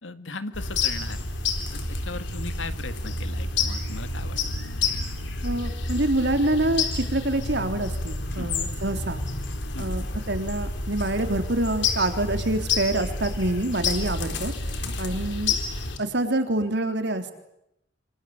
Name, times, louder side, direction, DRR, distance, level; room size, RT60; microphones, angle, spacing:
voice 1, 0.0-1.3 1.7-4.4 8.4-8.5 9.7-9.9 14.8-15.0, left 3 dB, 85° left, 11 dB, 2.1 m, -37 dB
sound 1, 0.5-16.0, left 3 dB, 70° left, 4.1 m, -29 dB
voice 2, 5.4-9.2 9.8-14.5 15.0-15.6 16.0-17.3, right 1 dB, 65° right, 7 dB, 3.5 m, -26 dB
26.5 x 25.5 x 8.7 m, 0.83 s
head